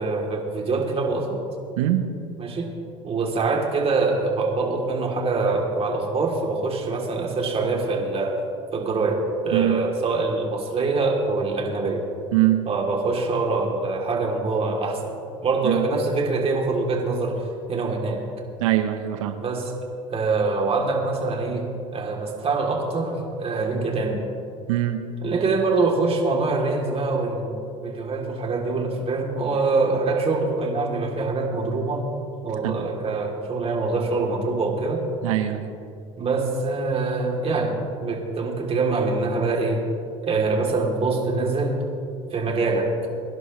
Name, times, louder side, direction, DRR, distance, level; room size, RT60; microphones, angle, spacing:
voice 1, 0.0-1.4 2.4-2.7 3.0-8.4 8.7-12.0 12.7-15.1 15.4-17.4 17.7-18.2 19.4-19.7 20.1-21.6 21.9-24.2 25.2-27.5 27.8-32.1 32.4-35.0 36.2-37.7 38.0-39.8 40.2-41.8 42.3-42.9, right 3 dB, 35° right, 0 dB, 3.2 m, -24 dB
voice 2, 9.5-9.8 12.3-12.6 15.6-15.9 18.6-19.4 24.7-25.0 32.6-32.7 35.2-35.7, right 14 dB, 85° right, 7 dB, 0.9 m, -22 dB
23.5 x 11.0 x 3.3 m, 2.5 s
hypercardioid pair, 80°, 16 cm